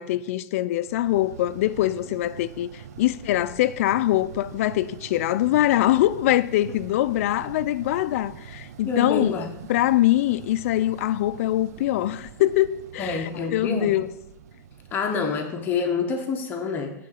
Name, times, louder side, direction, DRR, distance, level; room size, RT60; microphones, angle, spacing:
voice 1, 0.0-9.4 9.7-14.1, left 14 dB, 50° left, 0.4 m, -23 dB
sound 1, 0.8-15.8, right 8 dB, 65° right, 0.6 m, -44 dB
voice 2, 8.8-9.5 13.0-13.9 14.9-16.9, left 5 dB, 20° left, 0.8 m, -27 dB
8.5 x 3.8 x 6.5 m
supercardioid pair, 160°, 9 cm